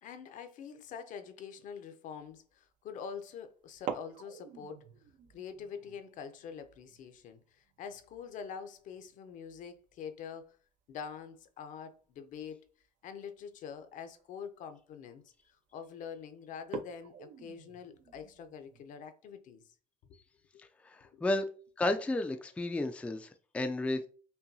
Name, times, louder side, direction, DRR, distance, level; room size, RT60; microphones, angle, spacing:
voice 1, 0.0-4.9 5.3-10.6 10.9-12.7 13.0-15.3 15.7-19.6 20.1-20.2 20.5-20.6 21.1-21.4, left 7 dB, 65° left, 0.6 m, -45 dB
sound 1, 2.2-2.5 3.7-10.2 10.4-10.5 10.9-11.3 12.3-12.4 13.1-13.2 13.7-13.8 14.2-14.5 15.1-15.5 15.9-16.0 16.6-18.9, right 7 dB, 65° right, 0.5 m, -47 dB
voice 2, 20.8-21.4 21.8-24.1, left 2 dB, 10° left, 0.3 m, -32 dB
5.5 x 2.2 x 2.6 m
cardioid pair, 120°, 14 cm